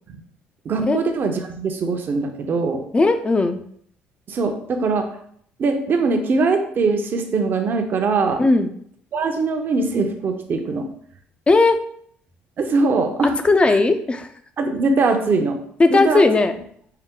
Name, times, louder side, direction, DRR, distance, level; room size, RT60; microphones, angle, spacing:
voice 1, 0.6-2.8 4.3-5.1 5.6-8.4 9.1-10.9 12.6-13.4 13.7-13.8 14.6-15.6 15.9-16.2, right 3 dB, 50° right, 5 dB, 0.7 m, -21 dB
voice 2, 2.9-3.6 8.4-8.7 11.5-11.8 13.4-14.3 15.8-16.5, left 3 dB, 25° left, 9 dB, 0.4 m, -16 dB
5.5 x 2.1 x 3.7 m, 0.64 s
supercardioid pair, 85°, 5 cm